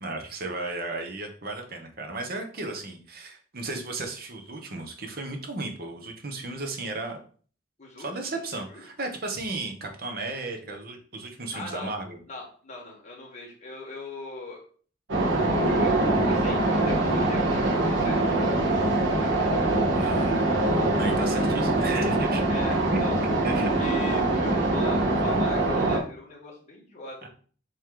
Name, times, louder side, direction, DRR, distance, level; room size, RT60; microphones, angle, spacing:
voice 1, 0.0-7.2 8.0-12.2 20.0-20.5 21.0-22.4 22.9-23.1 23.4-23.7 27.2-27.3, right 2 dB, 50° right, 4 dB, 1.1 m, -34 dB
voice 2, 7.8-8.3 8.7-8.8 11.5-11.9 12.3-14.6 15.7-19.4 20.0-20.5 22.5-23.2 23.6-27.3, left 3 dB, 35° left, -3 dB, 2.1 m, -40 dB
sound 1, 15.1-26.0, right 2 dB, 70° right, 1.5 m, -23 dB
7.6 x 3.3 x 3.8 m, 0.43 s
head